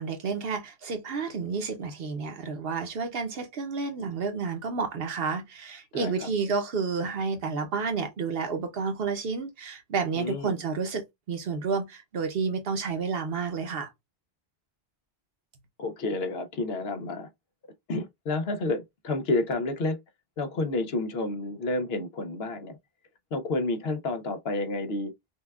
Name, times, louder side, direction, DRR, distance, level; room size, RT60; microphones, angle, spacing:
voice 1, 0.0-13.9, right 5 dB, 65° right, 1.0 m, -30 dB
voice 2, 5.9-6.3 10.2-10.6 15.8-17.3 17.9-20.0 20.4-22.8 23.3-25.1, left 2 dB, 75° left, 1.0 m, -30 dB
5.6 x 2.3 x 2.3 m
omnidirectional pair, 1.0 m